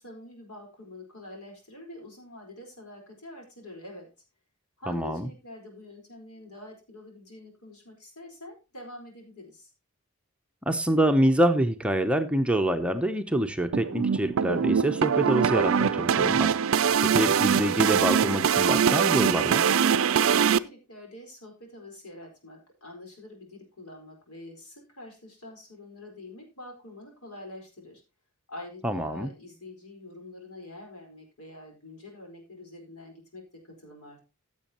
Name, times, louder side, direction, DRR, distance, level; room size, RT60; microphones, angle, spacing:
voice 1, 0.0-4.1 4.8-9.7 20.1-28.0 28.5-34.2, left 1 dB, 90° left, 1 dB, 4.5 m, -46 dB
voice 2, 4.9-5.3 10.7-16.5 16.8-19.7 28.8-29.3, right 1 dB, 5° right, 6 dB, 0.6 m, -26 dB
sound 1, 13.7-20.6, right 7 dB, 65° right, 0.4 m, -23 dB
15.5 x 7.3 x 2.9 m, 0.29 s
head